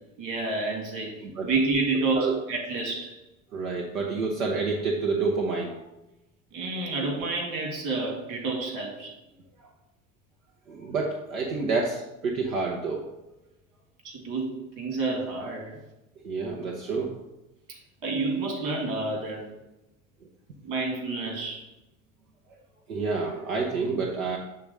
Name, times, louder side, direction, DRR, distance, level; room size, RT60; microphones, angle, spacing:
voice 1, 0.2-1.2 1.4-3.1 6.5-9.1 14.0-15.8 17.7-19.4 20.6-21.6, right 3 dB, 50° right, 0 dB, 2.2 m, -29 dB
voice 2, 3.5-5.8 10.7-13.1 16.2-17.1 22.9-24.4, right 4 dB, 80° right, 0 dB, 0.9 m, -28 dB
7.7 x 3.7 x 5.4 m, 0.94 s
figure-of-eight pair, 70°, 41 cm